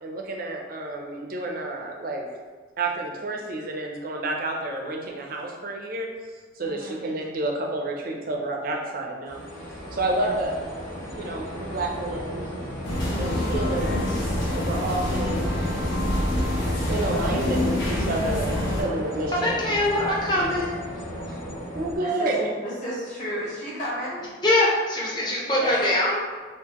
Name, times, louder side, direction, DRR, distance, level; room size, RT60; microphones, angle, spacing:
voice 1, 0.0-2.2 2.8-6.1 6.6-9.4 9.9-10.6 11.0-12.5 13.2-14.1 14.4-15.5 16.9-19.7 21.3-21.4 21.7-22.6 25.6-25.7, right 2 dB, 45° right, 0 dB, 0.5 m, -29 dB
voice 2, 6.6-7.1 10.0-10.5 22.0-22.4 22.6-24.2, equal, 35° left, -7 dB, 1.2 m, -34 dB
sound 1, 9.3-22.0, equal, 85° left, 1.3 m, -35 dB
sound 2, 12.8-18.8, left 1 dB, 65° left, 1.0 m, -26 dB
voice 3, 19.4-20.9 21.1-21.3 24.4-26.2, left 1 dB, 20° left, -5 dB, 0.7 m, -23 dB
3.7 x 2.6 x 2.9 m, 1.4 s
head